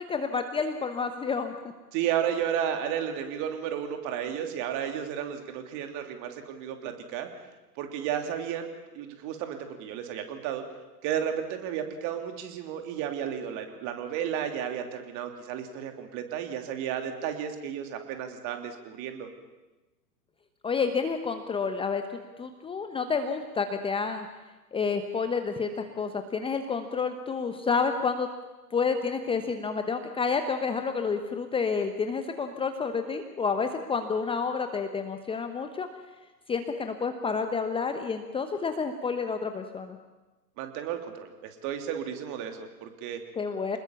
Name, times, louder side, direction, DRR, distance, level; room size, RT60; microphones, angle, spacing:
voice 1, 0.0-1.5 20.6-22.0 22.4-24.3 24.7-28.3 28.7-35.9 36.5-40.0 43.4-43.8, left 5 dB, 10° left, 7 dB, 1.0 m, -29 dB
voice 2, 1.9-7.3 7.8-8.7 8.9-10.6 11.0-19.3 40.6-43.2, right 9 dB, 35° right, 6 dB, 3.1 m, -33 dB
26.5 x 20.5 x 7.2 m, 1.1 s
figure-of-eight pair, 110°, 49 cm